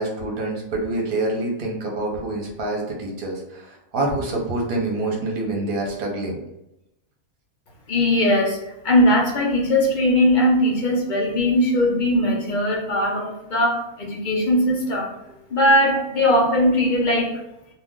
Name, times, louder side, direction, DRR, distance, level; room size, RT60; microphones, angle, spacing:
voice 1, 0.0-6.4, right 2 dB, 50° right, -1 dB, 0.8 m, -26 dB
voice 2, 7.9-8.6 8.8-15.1 15.5-17.4, left 1 dB, 50° left, -2 dB, 0.6 m, -19 dB
2.4 x 2.2 x 3.6 m, 0.89 s
omnidirectional pair, 1.5 m